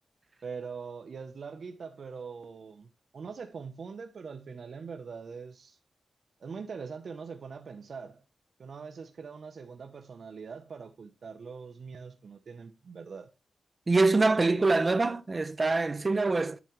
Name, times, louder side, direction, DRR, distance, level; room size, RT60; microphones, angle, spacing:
voice 1, 0.4-5.8 6.4-8.2 8.6-13.3, right 5 dB, 65° right, 0.7 m, -42 dB
voice 2, 13.9-16.6, right 3 dB, 30° right, 0.7 m, -24 dB
8.3 x 7.1 x 3.1 m
wide cardioid pair, 100°, 0 cm